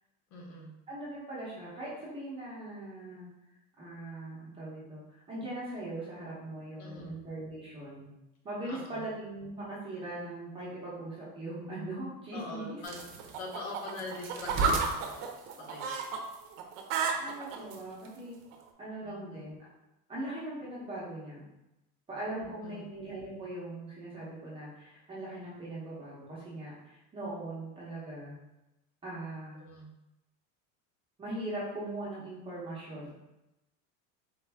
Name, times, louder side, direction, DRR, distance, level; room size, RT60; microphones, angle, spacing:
voice 1, 0.3-0.7 6.8-7.2 8.6-9.1 12.3-13.0 13.4-16.0 19.0-19.5 22.4-22.9 29.5-29.9, left 2 dB, 75° left, -1 dB, 1.3 m, -43 dB
voice 2, 0.9-3.3 3.8-8.1 8.4-12.8 17.2-18.4 18.8-19.7 20.1-21.5 22.1-28.4 29.0-29.6 31.2-33.2, right 1 dB, 15° right, -8 dB, 0.7 m, -40 dB
sound 1, 12.8-16.2 16.5-17.7 18.5-18.6, right 4 dB, 60° right, 0.6 m, -31 dB
4.2 x 2.5 x 3.3 m, 0.94 s
cardioid pair, 180°, 41 cm